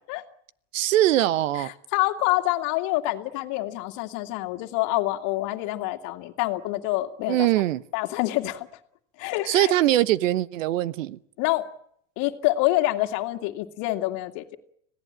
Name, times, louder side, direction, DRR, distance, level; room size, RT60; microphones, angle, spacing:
voice 1, 0.7-1.7 7.3-7.8 9.5-11.2, right 14 dB, 85° right, 1.1 m, -22 dB
voice 2, 1.6-7.5 7.9-8.7 9.2-9.7 11.4-11.6 12.2-14.6, left 17 dB, 50° left, 2.3 m, -26 dB
26.5 x 17.5 x 8.9 m
supercardioid pair, 135°, 37 cm